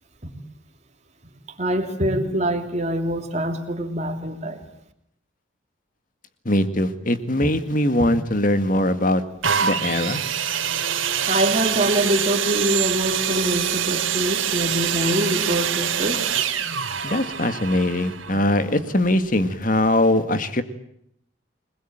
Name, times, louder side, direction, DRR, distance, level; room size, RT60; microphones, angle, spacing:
voice 1, 1.6-4.7 8.0-8.1 11.3-16.2, right 1 dB, 35° right, 5 dB, 3.0 m, -24 dB
voice 2, 6.5-9.2 9.6-10.2 17.0-20.6, left 1 dB, 40° left, 10 dB, 2.0 m, -21 dB
sound 1, 9.4-19.1 19.8-19.9, right 8 dB, 80° right, 2.7 m, -25 dB
29.5 x 21.0 x 9.0 m, 0.74 s
head